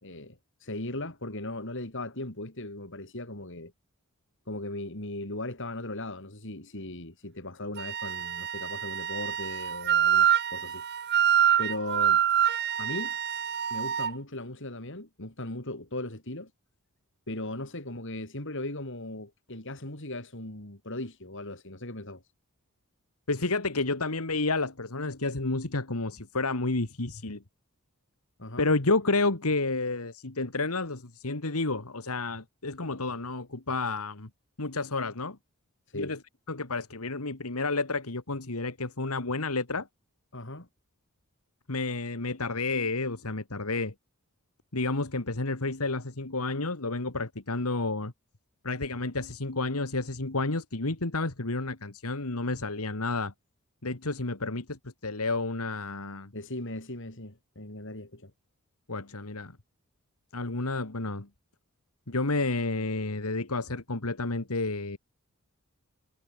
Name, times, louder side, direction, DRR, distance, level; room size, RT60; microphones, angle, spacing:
voice 1, 0.0-3.7 4.5-10.8 11.6-12.2 12.8-13.2 13.7-16.5 17.3-22.2 28.4-28.7 35.9-36.2 40.3-40.7 56.3-58.3, left 1 dB, 55° left, 5.0 m, -38 dB
Wind instrument woodwind instrument, 7.8-14.1, right 9 dB, 50° right, 1.2 m, -26 dB
voice 2, 23.3-27.4 28.6-34.3 34.6-35.4 35.9-36.2 36.5-39.9 41.7-43.9 44.7-48.1 48.6-53.3 53.8-56.3 58.9-59.5 60.3-61.3 62.1-65.0, left 3 dB, 75° left, 2.2 m, -30 dB
head